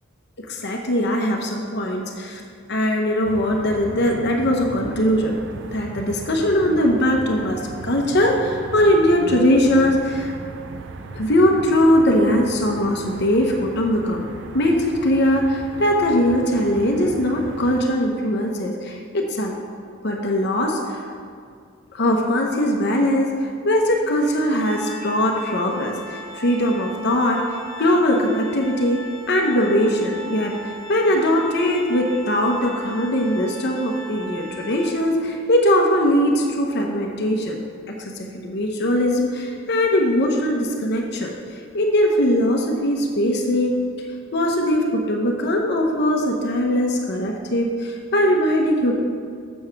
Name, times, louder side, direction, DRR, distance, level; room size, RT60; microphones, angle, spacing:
voice 1, 0.5-2.4 2.7-5.4 5.7-10.3 11.1-14.3 14.5-19.5 20.0-21.1 21.9-27.5 27.8-37.6 37.9-43.8 44.3-48.9, equal, 60° left, 1 dB, 0.9 m, -20 dB
sound 1, 3.2-17.8, right 3 dB, 65° right, 0.5 m, -37 dB
Organ, 24.6-35.3, right 1 dB, 85° left, 1.1 m, -38 dB
7.1 x 7.0 x 5.8 m, 2.2 s
head